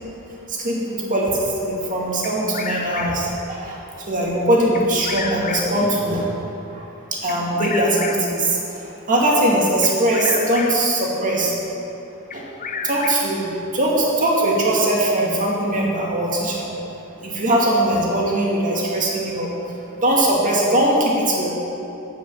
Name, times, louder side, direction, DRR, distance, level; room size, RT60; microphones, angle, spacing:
voice 1, 0.5-3.8 4.1-6.3 6.7-6.8 7.1-8.6 9.1-11.5 12.3-12.4 12.8-13.5 13.7-16.7 17.2-19.5 20.0-21.5, right 1 dB, 40° right, -3 dB, 2.2 m, -20 dB
Bird vocalization bird call bird song, 2.2-3.4 4.7-5.9 7.3-8.4 9.8-10.9 12.3-13.5, left 5 dB, 35° left, 0.6 m, -31 dB
8.9 x 8.6 x 7.1 m, 3.0 s
head